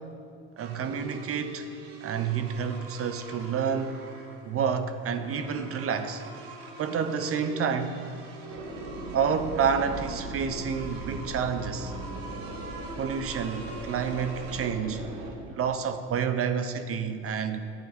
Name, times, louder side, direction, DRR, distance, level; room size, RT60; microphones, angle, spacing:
voice 1, 0.6-1.6 2.0-4.0 4.4-6.2 6.8-8.0 9.1-11.9 13.0-15.0 15.5-17.6, right 6 dB, 45° right, 0.9 m, -29 dB
sound 1, 0.6-14.7, right 3 dB, 90° right, 1.1 m, -45 dB
sound 2, 8.5-15.4, right 2 dB, 75° right, 1.5 m, -39 dB
12.0 x 8.6 x 4.2 m
hypercardioid pair, 65°, 30 cm